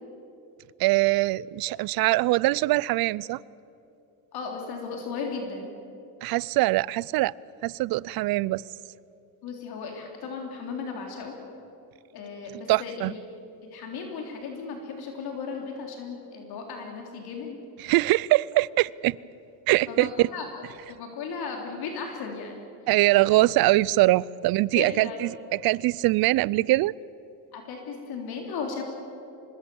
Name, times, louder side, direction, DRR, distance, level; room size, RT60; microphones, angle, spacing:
voice 1, 0.8-3.4 6.2-7.3 7.6-8.6 12.7-13.1 17.8-19.2 19.7-20.1 22.9-26.9, right 18 dB, 60° right, 23 dB, 0.6 m, -23 dB
voice 2, 4.3-5.7 9.4-11.3 12.1-13.2 13.6-17.6 19.9-20.5 20.9-22.6 24.7-25.2 27.5-28.8, left 5 dB, 65° left, 2 dB, 3.7 m, -35 dB
25.0 x 21.0 x 7.1 m, 2.8 s
cardioid pair, 110°, 40 cm